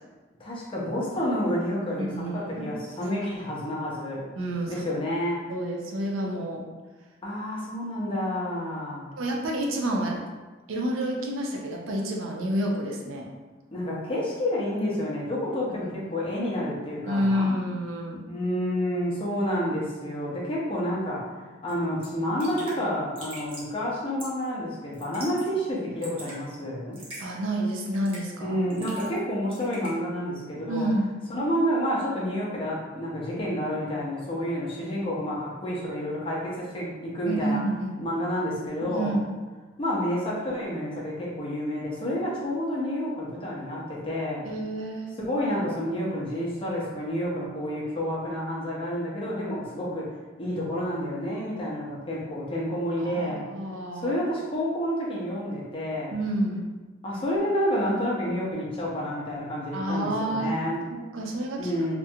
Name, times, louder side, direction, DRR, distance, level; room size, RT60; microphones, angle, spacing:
voice 1, 0.4-4.2 4.7-5.4 7.2-9.1 13.7-17.6 18.3-21.2 21.6-27.0 28.4-30.9 31.3-37.6 38.0-39.1 39.8-44.5 45.2-50.1 50.4-53.4 53.9-56.2 57.0-60.8 61.6-61.9, equal, 30° left, -5 dB, 0.6 m, -29 dB
voice 2, 2.0-2.7 4.4-4.9 5.5-6.6 9.2-10.2 10.7-13.3 15.8-15.9 17.1-18.3 27.2-28.6 30.7-31.2 37.3-38.0 38.8-39.3 44.4-45.2 53.0-54.2 56.1-56.7 59.7-60.6 60.9-61.9, right 1 dB, 85° right, 1 dB, 0.5 m, -29 dB
Raindrop / Drip, 21.7-21.8 22.0-22.1 22.4-22.8 23.2-23.7 24.2-24.5 24.9-25.5 25.8-26.4 26.9-27.2 27.9-28.3 28.7-29.2 29.5-29.9, right 1 dB, 30° right, 0.8 m, -42 dB
2.4 x 2.2 x 2.7 m, 1.3 s
head